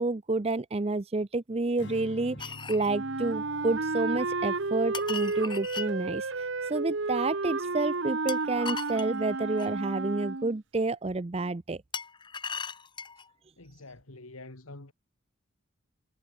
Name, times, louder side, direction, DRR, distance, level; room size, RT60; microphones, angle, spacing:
voice 1, 0.0-11.8, right 2 dB, 30° right, 0.5 m, -29 dB
Strum, 1.8-8.2, left 1 dB, 55° left, 2.5 m, -50 dB
sound 1, 2.4-2.9 4.9-5.9 8.3-9.7 11.9-13.3, left 6 dB, 20° left, 1.3 m, -38 dB
Wind instrument woodwind instrument, 2.9-10.6, right 3 dB, 60° right, 1.0 m, -32 dB
voice 2, 13.6-14.9, left 2 dB, 85° left, 2.4 m, -46 dB
head